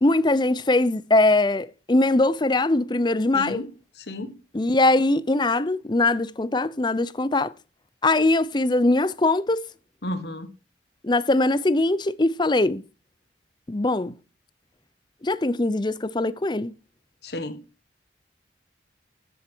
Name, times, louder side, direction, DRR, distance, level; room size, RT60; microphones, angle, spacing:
voice 1, 0.0-3.6 4.5-7.5 8.0-9.7 11.0-12.8 13.7-14.2 15.2-16.7, left 2 dB, 25° left, 0.6 m, -21 dB
voice 2, 3.3-3.7 4.1-4.4 10.0-10.5 17.2-17.6, left 1 dB, 60° left, 1.4 m, -32 dB
13.5 x 7.9 x 4.6 m
head